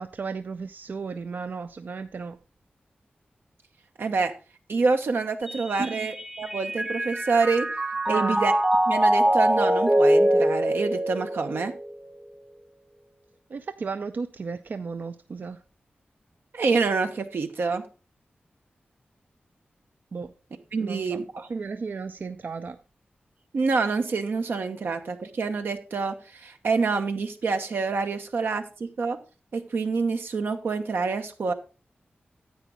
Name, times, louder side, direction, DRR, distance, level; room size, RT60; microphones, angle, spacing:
voice 1, 0.0-2.4 5.8-6.1 6.4-6.5 8.1-8.4 13.5-15.6 20.1-20.3 20.8-21.2 21.5-22.8, right 4 dB, 55° right, 0.4 m, -34 dB
voice 2, 4.0-4.3 4.7-7.7 8.1-8.5 8.9-11.7 16.5-17.8 20.7-21.5 23.5-29.2 29.5-31.5, right 4 dB, 80° right, 1.1 m, -27 dB
Mallet percussion, 5.5-11.9, right 1 dB, 15° right, 0.7 m, -23 dB
10.0 x 8.2 x 3.6 m
wide cardioid pair, 95°, 4 cm